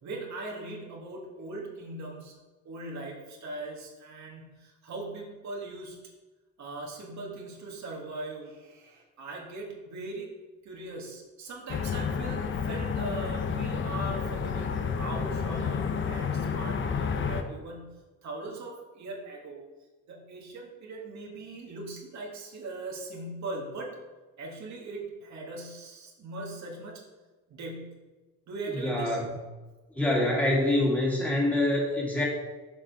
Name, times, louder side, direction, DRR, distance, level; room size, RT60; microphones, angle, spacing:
voice 1, 0.0-2.4 2.6-6.0 6.6-10.3 10.6-19.6 20.1-23.9 24.4-27.0 27.5-28.0 28.5-29.2, right 2 dB, 65° right, -1 dB, 1.7 m, -40 dB
sound 1, 11.7-17.4, left 6 dB, 40° left, 0.7 m, -30 dB
voice 2, 28.7-29.3 29.9-32.2, left 1 dB, 5° left, -3 dB, 2.2 m, -25 dB
6.9 x 4.9 x 4.7 m, 1.2 s
cardioid pair, 90°, 30 cm